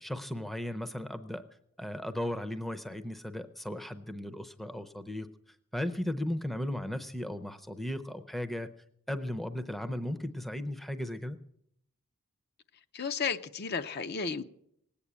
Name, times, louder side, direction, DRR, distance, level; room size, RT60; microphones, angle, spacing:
voice 1, 0.0-1.4 1.8-5.3 5.7-8.7 9.1-11.4, left 1 dB, ahead, 9 dB, 0.6 m, -36 dB
voice 2, 12.9-14.4, left 5 dB, 45° left, 10 dB, 0.6 m, -33 dB
19.0 x 8.7 x 8.2 m, 0.74 s
head